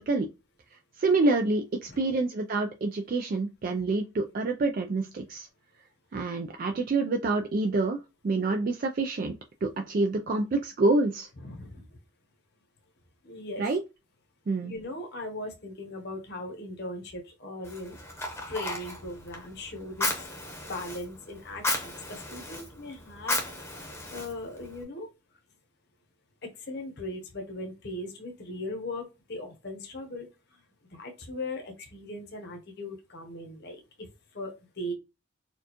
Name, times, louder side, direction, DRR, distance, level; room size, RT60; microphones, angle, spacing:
voice 1, 1.0-5.5 6.1-8.0 8.2-9.4 9.6-11.3 13.6-13.8 14.5-14.7, right 3 dB, 45° right, 0.3 m, -27 dB
voice 2, 11.4-11.8 13.2-13.6 14.6-20.3 20.6-23.4 23.7-25.1 26.7-30.3 30.9-33.8 34.3-34.9, left 1 dB, 55° left, 0.9 m, -39 dB
Fire, 17.6-24.8, left 2 dB, 10° left, 0.8 m, -35 dB
4.3 x 2.4 x 2.9 m
head